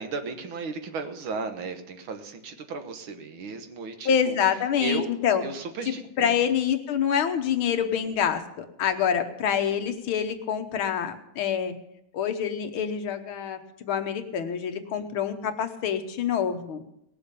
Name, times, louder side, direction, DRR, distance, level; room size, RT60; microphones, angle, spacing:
voice 1, 0.0-4.4 4.8-5.1 5.4-6.4 14.9-15.1, right 4 dB, 75° right, 7 dB, 2.0 m, -35 dB
voice 2, 4.1-5.4 6.2-11.7 12.1-16.8, left 8 dB, 75° left, 8 dB, 1.9 m, -26 dB
18.5 x 7.0 x 6.7 m, 0.82 s
omnidirectional pair, 2.3 m